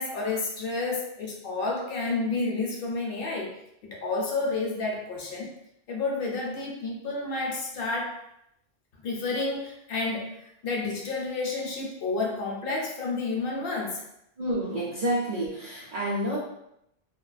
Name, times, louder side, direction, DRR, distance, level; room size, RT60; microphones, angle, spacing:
voice 1, 0.0-3.5 3.9-5.5 5.9-8.2 9.0-14.0, left 3 dB, 70° left, -1 dB, 0.7 m, -30 dB
voice 2, 14.4-16.4, right 1 dB, 55° right, -6 dB, 0.5 m, -29 dB
2.3 x 2.2 x 2.4 m, 0.79 s
omnidirectional pair, 1.1 m